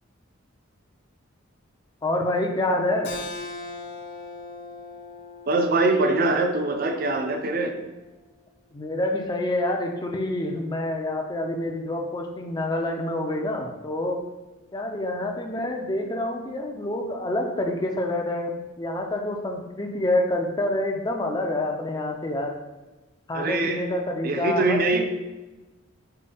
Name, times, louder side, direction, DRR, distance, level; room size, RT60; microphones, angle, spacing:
voice 1, 2.0-3.1 8.7-14.2 14.7-22.6 23.3-25.1, left 1 dB, 20° left, 2 dB, 0.4 m, -27 dB
Keyboard (musical), 3.0-8.2, left 3 dB, 50° left, 0.9 m, -40 dB
voice 2, 5.5-7.7 23.3-23.9 24.2-25.0, right 2 dB, 45° right, 5 dB, 0.5 m, -23 dB
5.4 x 2.3 x 3.4 m, 1.1 s
head